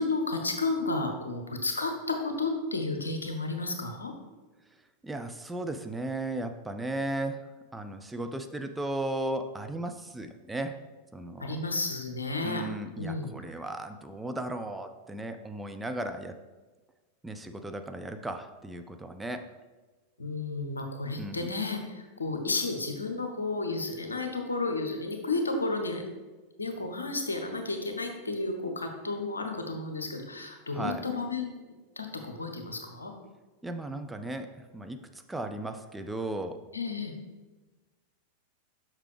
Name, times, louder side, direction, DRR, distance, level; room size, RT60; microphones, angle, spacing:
voice 1, 0.0-4.1 11.4-12.6 13.0-13.3 20.2-26.0 26.6-31.5 32.0-33.1 36.7-37.1, left 3 dB, 75° left, 5 dB, 0.9 m, -32 dB
voice 2, 5.0-7.5 7.7-10.8 11.1-11.6 12.4-16.4 17.2-19.5 21.2-21.5 30.7-31.0 33.6-35.0 35.3-36.6, right 1 dB, 5° right, 6 dB, 0.4 m, -36 dB
6.6 x 5.9 x 3.3 m, 1.3 s
figure-of-eight pair, 90°, 0 cm